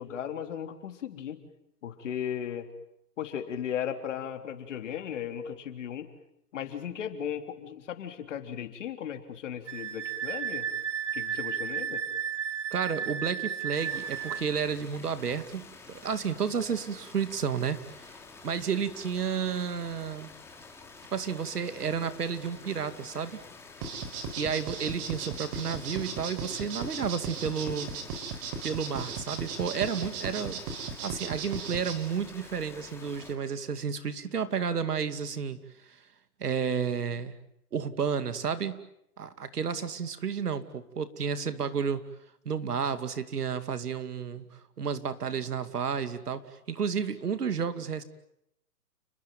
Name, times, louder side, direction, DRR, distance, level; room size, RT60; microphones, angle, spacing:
voice 1, 0.0-1.4 1.8-2.7 3.2-6.1 6.5-10.7 11.1-12.0, left 9 dB, 50° left, 7 dB, 3.6 m, -36 dB
Wind instrument woodwind instrument, 9.7-14.4, right 8 dB, 50° right, 2.1 m, -33 dB
voice 2, 12.7-17.8 18.1-18.2 18.4-20.3 21.1-23.4 24.4-27.9 28.6-30.6 31.0-35.6 35.9-36.0 36.4-37.4 37.7-38.8 39.2-42.0 42.4-44.4 44.8-46.4 46.7-48.0, right 6 dB, 80° right, 11 dB, 2.7 m, -31 dB
sound 1, 13.7-33.3, left 4 dB, 5° left, 2.9 m, -49 dB
sound 2, 23.8-31.9, right 5 dB, 30° right, 4.9 m, -36 dB
30.0 x 21.0 x 9.3 m, 0.78 s
hypercardioid pair, 150°, 45 cm